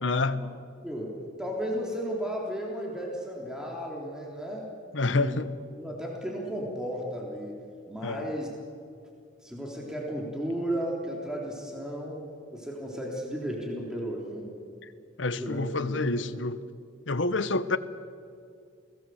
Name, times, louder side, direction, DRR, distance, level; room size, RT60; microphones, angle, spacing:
voice 1, 0.0-0.4 4.9-5.5 8.0-8.3 15.2-16.6 17.1-17.8, left 3 dB, 75° left, 1.1 m, -27 dB
voice 2, 0.8-4.7 5.0-5.4 5.8-7.6 7.9-8.5 9.4-12.2 12.5-14.5 15.4-16.2, equal, 5° right, 3.7 m, -34 dB
29.5 x 18.5 x 7.9 m
head